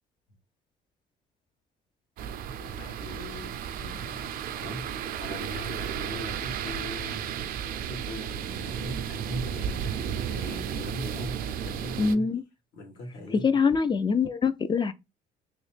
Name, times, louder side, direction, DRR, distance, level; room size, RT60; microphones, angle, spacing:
sound 1, 2.2-12.2, right 8 dB, 60° right, 0.4 m, -33 dB
voice 1, 2.6-7.5 7.9-11.4 11.6-12.3 12.7-13.6, left 2 dB, 75° left, 1.6 m, -41 dB
voice 2, 12.0-12.4 13.4-14.9, left 5 dB, 25° left, 0.4 m, -24 dB
3.1 x 3.0 x 3.2 m
cardioid pair, 110°, 17 cm